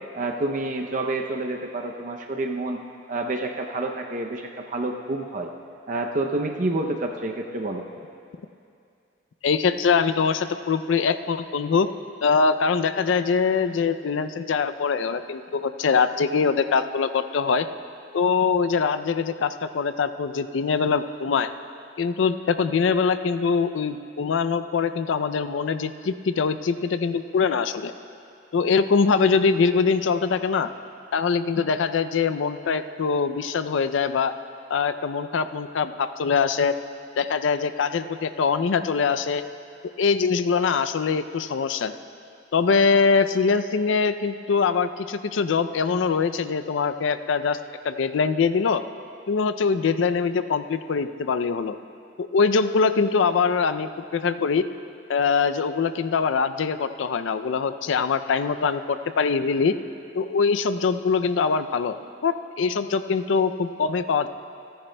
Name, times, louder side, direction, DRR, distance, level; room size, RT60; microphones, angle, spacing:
voice 1, 0.1-2.8 3.1-5.5 5.9-7.8, right 2 dB, 45° right, 3 dB, 0.6 m, -28 dB
voice 2, 9.4-11.9 12.2-17.7 18.1-21.5 22.0-27.9 28.5-30.7 31.1-34.3 34.7-36.7 37.2-39.4 40.0-41.9 42.5-47.6 47.8-48.8 49.3-51.8 52.2-54.6 55.1-59.7 60.1-62.0 62.2-64.3, left 5 dB, 85° left, 11 dB, 0.4 m, -23 dB
28.0 x 10.0 x 2.2 m, 2.5 s
head